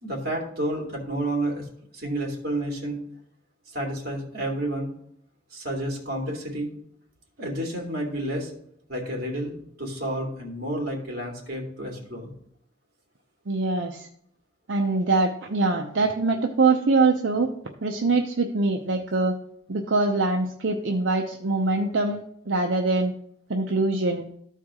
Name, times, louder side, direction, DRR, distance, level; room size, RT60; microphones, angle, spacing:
voice 1, 0.0-1.7 1.9-3.0 3.7-4.9 5.5-6.7 7.4-8.5 8.9-9.5 9.8-12.3, right 1 dB, 55° right, -1 dB, 2.6 m, -30 dB
voice 2, 13.5-14.1 14.7-17.5 17.8-19.3 19.7-23.1 23.5-24.2, right 3 dB, 80° right, 3 dB, 0.7 m, -23 dB
14.0 x 4.6 x 3.7 m, 0.69 s
head